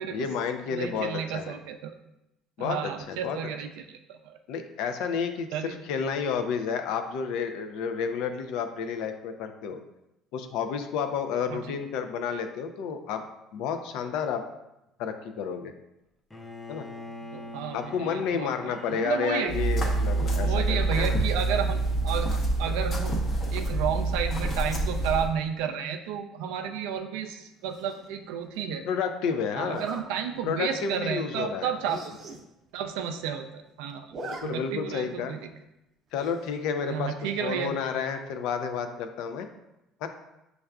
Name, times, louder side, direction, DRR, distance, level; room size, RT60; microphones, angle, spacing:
voice 1, 0.1-1.6 2.6-3.4 4.5-9.8 10.3-13.2 13.5-14.4 15.0-15.7 16.7-16.9 17.7-21.2 28.9-29.8 30.4-32.0 34.2-35.3 36.1-39.5 40.0-40.1, left 6 dB, 75° left, 7 dB, 0.4 m, -31 dB
voice 2, 0.7-1.9 2.6-4.4 5.5-5.8 11.5-11.7 17.3-19.5 20.3-23.2 23.5-28.8 29.6-32.0 32.7-34.1 34.4-35.4 36.9-37.8, right 8 dB, 85° right, 6 dB, 0.3 m, -32 dB
Bowed string instrument, 16.3-22.4, left 1 dB, 10° left, 0.4 m, -44 dB
sound 1, 19.5-25.3, right 2 dB, 40° left, 0.8 m, -26 dB
Zipper (clothing), 27.7-28.1 29.6-30.0 30.6-30.8 31.1-31.2 31.4-31.5 31.8-32.4 32.8-32.9 33.0-33.6 33.9-34.4 34.7-34.8 36.2-36.6, right 3 dB, 45° right, 0.6 m, -41 dB
6.4 x 2.3 x 2.3 m, 0.90 s
cardioid pair, 110°, 0 cm